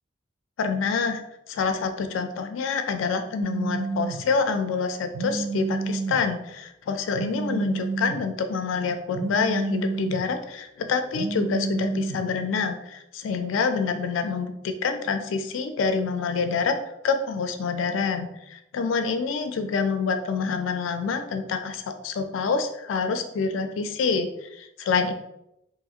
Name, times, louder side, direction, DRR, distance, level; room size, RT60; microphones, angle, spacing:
voice 1, 0.6-1.2 1.5-16.8 17.0-25.1, left 5 dB, 85° left, 8 dB, 0.3 m, -27 dB
Telephone, 3.4-4.2 5.1-6.2 7.1-8.2 9.1-10.2 11.1-12.2, right 4 dB, 65° right, 0.3 m, -29 dB
2.8 x 2.4 x 2.7 m, 0.84 s
head